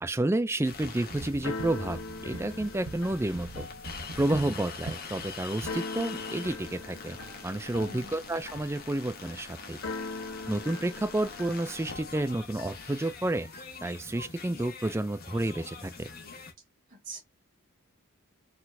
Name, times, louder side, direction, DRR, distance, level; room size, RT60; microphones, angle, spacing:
voice 1, 0.0-3.7 4.2-7.2 7.4-9.8 10.5-13.5 13.8-16.1, right 1 dB, 10° right, 0.4 m, -30 dB
sound 1, 0.6-16.5, left 5 dB, 45° left, 1.3 m, -45 dB
sound 2, 0.7-5.7, right 2 dB, 85° right, 1.1 m, -42 dB
Keyboard (musical), 0.8-12.9, left 3 dB, 75° left, 0.8 m, -42 dB
voice 2, 7.7-8.2 16.9-17.2, right 3 dB, 40° right, 2.2 m, -43 dB
4.5 x 4.0 x 2.7 m
head